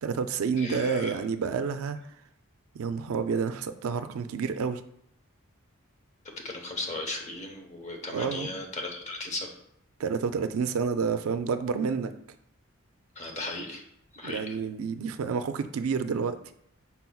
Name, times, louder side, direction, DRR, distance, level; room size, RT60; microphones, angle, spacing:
voice 1, 0.0-2.0 2.7-4.8 8.1-8.5 10.0-12.1 14.2-16.4, right 5 dB, 80° right, 10 dB, 0.4 m, -29 dB
voice 2, 0.6-1.1 6.4-9.5 13.2-13.8 14.1-14.6, left 2 dB, 35° left, 2 dB, 0.8 m, -36 dB
5.6 x 4.1 x 2.3 m, 0.73 s
head